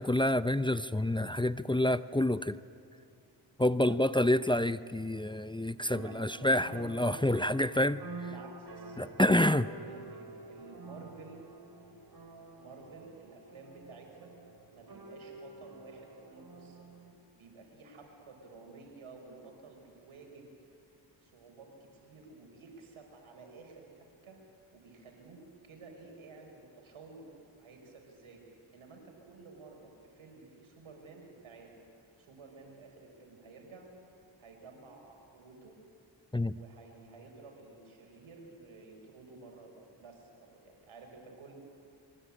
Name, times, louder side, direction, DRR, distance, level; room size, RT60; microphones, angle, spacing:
voice 1, 0.0-2.6 3.6-8.0 9.0-9.7 36.3-36.5, left 1 dB, 10° left, 13 dB, 0.7 m, -28 dB
sound 1, 5.9-17.1, right 3 dB, 50° right, 4.0 m, -49 dB
voice 2, 5.9-6.9 8.2-11.5 12.6-14.3 14.7-16.9 17.4-20.7 21.2-24.4 24.7-27.3 27.6-31.8 32.2-33.9 34.4-35.8 36.4-41.5, right 3 dB, 90° right, 2 dB, 5.4 m, -52 dB
26.0 x 23.5 x 8.7 m, 2.6 s
cardioid pair, 45°, 48 cm